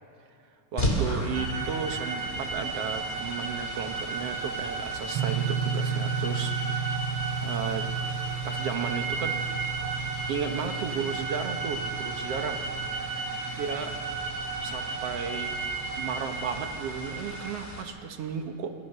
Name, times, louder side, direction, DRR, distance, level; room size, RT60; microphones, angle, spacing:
voice 1, 0.7-6.8 7.4-7.9 8.4-9.5 10.3-12.6 13.6-13.9 14.6-15.5 16.0-18.8, right 6 dB, 60° right, 6 dB, 2.1 m, -34 dB
sound 1, 0.8-17.8, equal, 20° left, 3.1 m, -38 dB
sound 2, 1.3-17.5, right 4 dB, 45° right, 2.4 m, -34 dB
sound 3, 5.1-14.9, right 6 dB, 80° right, 1.1 m, -34 dB
27.5 x 23.5 x 6.8 m, 2.5 s
omnidirectional pair, 3.3 m